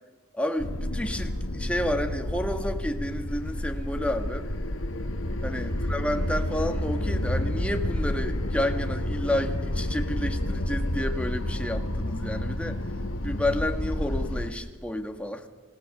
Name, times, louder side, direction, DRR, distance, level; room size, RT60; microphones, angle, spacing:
voice 1, 0.3-4.5 5.4-12.8 13.2-15.4, left 1 dB, 5° left, 5 dB, 1.5 m, -30 dB
sound 1, 0.6-14.5, left 1 dB, 65° left, 1.5 m, -30 dB
27.0 x 18.0 x 6.6 m, 1.3 s
head